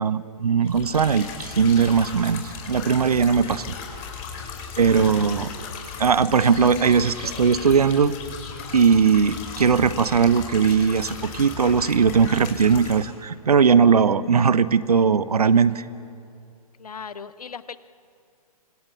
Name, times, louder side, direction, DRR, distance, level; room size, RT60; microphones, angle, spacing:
voice 1, 0.0-3.8 4.8-5.5 6.0-8.1 8.7-15.8, right 6 dB, 75° right, 15 dB, 1.1 m, -19 dB
sound 1, 0.6-13.1, left 6 dB, 30° left, 5.2 m, -36 dB
voice 2, 16.8-17.8, left 6 dB, 70° left, 14 dB, 1.1 m, -37 dB
28.5 x 26.0 x 7.0 m, 2.5 s
figure-of-eight pair, 125°, 20 cm